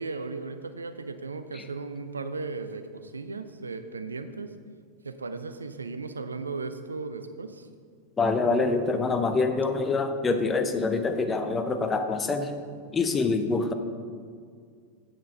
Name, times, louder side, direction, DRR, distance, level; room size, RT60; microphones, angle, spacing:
voice 1, 0.0-4.5 5.0-7.7, right 3 dB, 75° right, 9 dB, 0.5 m, -36 dB
voice 2, 8.2-12.5 12.9-13.7, left 3 dB, 20° left, 7 dB, 0.8 m, -25 dB
8.9 x 6.4 x 5.1 m, 2.1 s
figure-of-eight pair, 90°, 0 cm